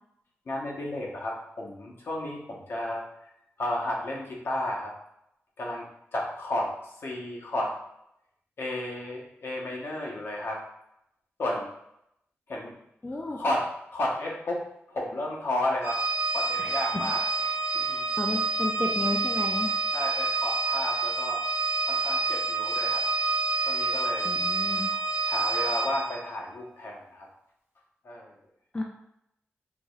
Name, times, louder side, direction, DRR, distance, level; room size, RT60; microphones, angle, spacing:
voice 1, 0.5-3.0 3.6-4.9 5.6-5.9 6.1-7.7 8.6-10.6 11.4-11.7 12.5-12.7 13.4-16.0 16.3-17.2 17.7-18.0 19.9-21.4 21.9-23.0 23.7-24.3 24.7-24.8 25.3-27.3 28.0-28.3, left 1 dB, 65° left, -2 dB, 1.0 m, -32 dB
voice 2, 13.0-13.4 16.6-17.1 17.4-19.7 24.2-24.9 28.7-28.8, left 2 dB, 20° left, 0 dB, 0.4 m, -33 dB
Organ, 15.8-26.2, right 3 dB, 50° right, 0.8 m, -28 dB
4.7 x 3.0 x 2.3 m, 0.79 s
wide cardioid pair, 120°, 4 cm